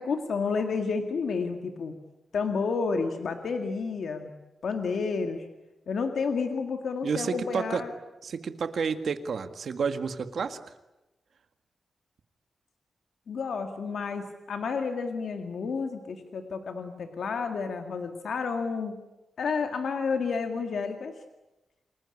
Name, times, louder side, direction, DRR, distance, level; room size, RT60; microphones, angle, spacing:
voice 1, 0.0-1.9 2.3-4.3 4.6-5.5 5.9-7.9 13.3-19.0 19.4-21.1, left 5 dB, 65° left, 5 dB, 2.1 m, -30 dB
voice 2, 7.0-7.8 8.2-10.6, right 5 dB, 60° right, 9 dB, 1.8 m, -30 dB
28.5 x 20.5 x 10.0 m, 1.0 s
wide cardioid pair, 170°, 0 cm